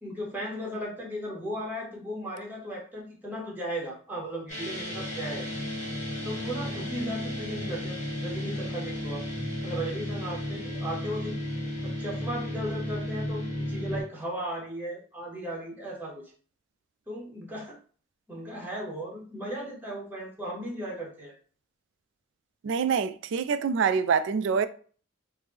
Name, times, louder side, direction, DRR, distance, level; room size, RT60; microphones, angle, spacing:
voice 1, 0.0-5.5 6.2-9.3 9.6-11.4 11.8-16.2 17.1-17.8 18.3-21.3, equal, 10° right, 0.9 m, -36 dB
sound 1, 4.5-14.0, left 1 dB, 40° left, 1.4 m, -33 dB
voice 2, 22.6-24.7, right 6 dB, 65° right, 0.3 m, -25 dB
3.1 x 2.0 x 3.4 m
head